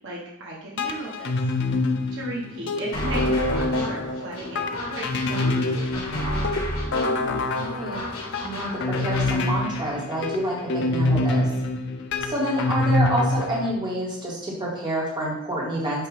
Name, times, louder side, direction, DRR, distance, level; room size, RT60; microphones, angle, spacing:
voice 1, 0.0-1.3 2.1-6.4, right 1 dB, 60° right, -4 dB, 1.4 m, -36 dB
sound 1, 0.8-13.7, left 2 dB, 55° left, 0.7 m, -26 dB
sound 2, 2.9-9.3, equal, 75° left, 1.8 m, -31 dB
voice 2, 6.9-8.0 8.4-11.5 12.1-16.1, equal, 20° right, -5 dB, 2.1 m, -28 dB
8.2 x 3.2 x 5.2 m, 0.91 s
head